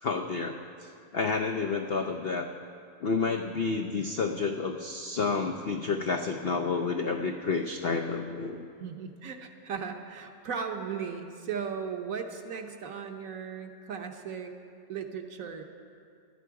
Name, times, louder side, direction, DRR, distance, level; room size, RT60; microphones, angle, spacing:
voice 1, 0.0-2.5 3.0-8.7, left 4 dB, 80° left, 4 dB, 0.5 m, -30 dB
voice 2, 8.8-14.5 14.9-15.6, right 6 dB, 60° right, 4 dB, 1.2 m, -37 dB
17.0 x 12.0 x 4.7 m, 2.4 s
omnidirectional pair, 1.8 m